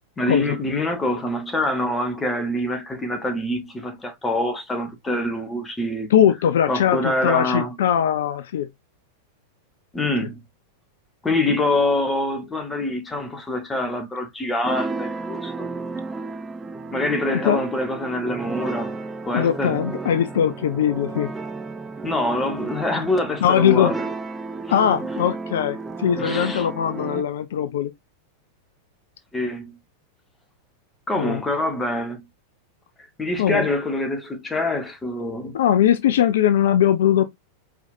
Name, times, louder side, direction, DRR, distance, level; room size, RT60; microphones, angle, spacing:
voice 1, 0.2-6.1 6.7-7.7 9.9-10.4 11.2-15.7 16.9-19.0 19.2-19.8 22.0-24.1 24.6-24.7 26.2-26.7 29.3-29.7 31.1-32.2 33.2-35.5, left 1 dB, 15° left, 1.2 m, -25 dB
voice 2, 6.1-8.7 17.3-17.6 19.3-21.3 23.4-23.9 24.7-27.9 31.2-31.4 33.4-33.7 35.5-37.2, left 9 dB, 60° left, 0.4 m, -20 dB
sound 1, 14.6-27.2, right 3 dB, 15° right, 0.5 m, -32 dB
4.6 x 3.6 x 2.5 m
figure-of-eight pair, 90°, 0 cm